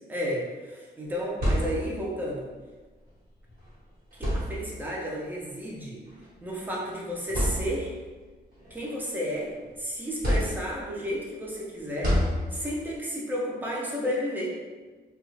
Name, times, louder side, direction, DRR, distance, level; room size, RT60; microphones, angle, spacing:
voice 1, 0.1-2.5 4.2-6.0 6.4-7.9 8.7-9.5 9.8-12.2 12.5-14.5, equal, 10° right, -4 dB, 0.5 m, -32 dB
sound 1, 1.1-2.2 3.5-3.6 4.1-5.0 6.1-6.2 6.8-6.9 7.3-8.1 8.6-9.7 10.2-11.0 12.0-12.9, equal, 50° right, 1.2 m, -29 dB
2.9 x 2.3 x 3.2 m, 1.3 s
wide cardioid pair, 170°, 18 cm